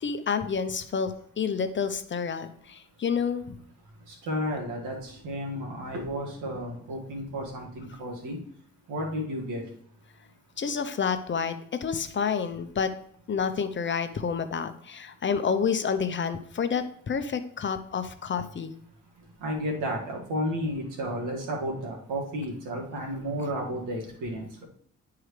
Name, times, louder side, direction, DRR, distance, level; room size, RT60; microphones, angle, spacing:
voice 1, 0.0-3.5 10.6-11.6 11.8-12.9 13.3-18.7, left 6 dB, 40° left, 9 dB, 0.8 m, -29 dB
voice 2, 4.1-8.4 8.9-9.6 19.4-24.6, equal, 85° right, 0 dB, 2.0 m, -32 dB
11.0 x 4.7 x 3.3 m, 0.64 s
cardioid pair, 90°, 30 cm